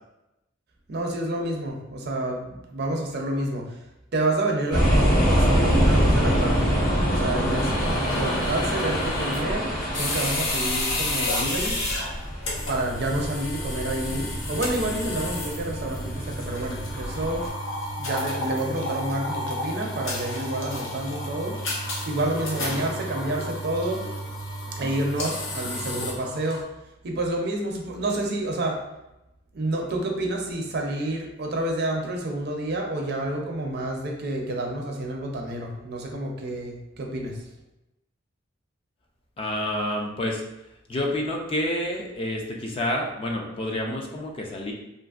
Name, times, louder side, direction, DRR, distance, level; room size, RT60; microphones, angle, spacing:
voice 1, 0.9-3.8 4.1-6.7 7.1-7.7 8.1-11.8 12.7-17.5 18.0-21.6 22.1-24.0 24.7-26.6 27.0-28.8 29.5-37.4, right 1 dB, 55° right, 1 dB, 0.5 m, -29 dB
sound 1, 4.7-17.5, equal, 45° left, 1.0 m, -25 dB
sound 2, 7.6-26.6, left 1 dB, 75° left, 0.7 m, -32 dB
voice 2, 39.4-40.4 40.9-44.7, left 1 dB, 30° left, 0 dB, 0.3 m, -28 dB
2.9 x 2.5 x 2.4 m, 0.93 s
head